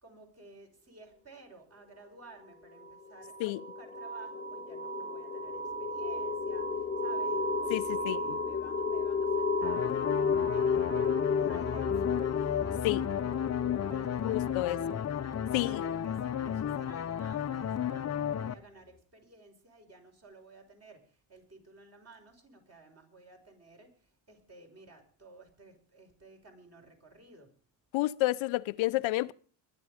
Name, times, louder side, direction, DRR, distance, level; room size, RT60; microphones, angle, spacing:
voice 1, 0.0-10.1 10.5-15.0 15.6-27.5, right 2 dB, 35° right, 5.6 m, -55 dB
sound 1, 2.8-17.2, left 4 dB, 15° left, 1.2 m, -33 dB
voice 2, 7.7-8.4 12.8-13.1 14.2-14.8 15.5-15.8 27.9-29.3, left 18 dB, 85° left, 0.7 m, -30 dB
sound 2, 9.6-18.5, left 9 dB, 35° left, 0.9 m, -33 dB
22.5 x 11.0 x 5.1 m
cardioid pair, 130°, 46 cm